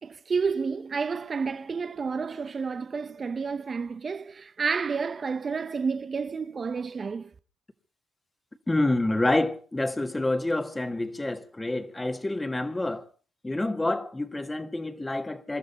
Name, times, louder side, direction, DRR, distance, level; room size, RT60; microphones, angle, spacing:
voice 1, 0.0-7.3, right 5 dB, 40° right, 0.9 m, -30 dB
voice 2, 8.7-13.1 13.4-15.6, left 2 dB, 15° left, 1.8 m, -28 dB
27.0 x 13.0 x 4.1 m
cardioid pair, 90°, 0 cm